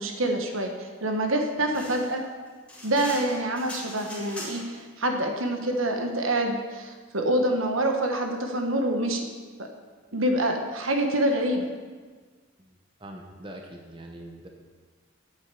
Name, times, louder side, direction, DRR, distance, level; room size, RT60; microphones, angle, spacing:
voice 1, 0.0-2.2 2.8-9.2 10.1-11.7, right 1 dB, 75° right, 4 dB, 1.3 m, -26 dB
sound 1, 1.7-4.8, left 1 dB, 5° left, 2.5 m, -41 dB
voice 2, 13.0-14.5, right 1 dB, 25° right, 2 dB, 0.9 m, -43 dB
8.9 x 8.1 x 6.8 m, 1.5 s
head